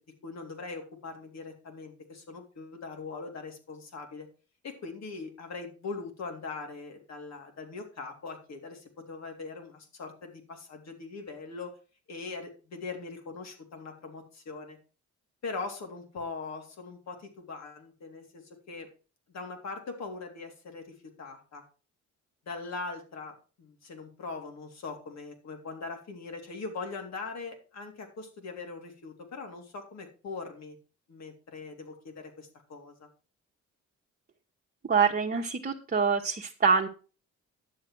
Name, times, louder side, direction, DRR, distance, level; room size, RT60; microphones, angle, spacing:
voice 1, 0.2-4.3 4.6-11.7 12.1-14.8 15.4-18.9 19.3-21.6 22.5-30.8 31.1-33.1, left 4 dB, 60° left, 4 dB, 3.5 m, -41 dB
voice 2, 34.8-36.9, right 5 dB, 30° right, 0 dB, 1.5 m, -25 dB
11.0 x 8.1 x 4.7 m, 0.35 s
cardioid pair, 90°, 30 cm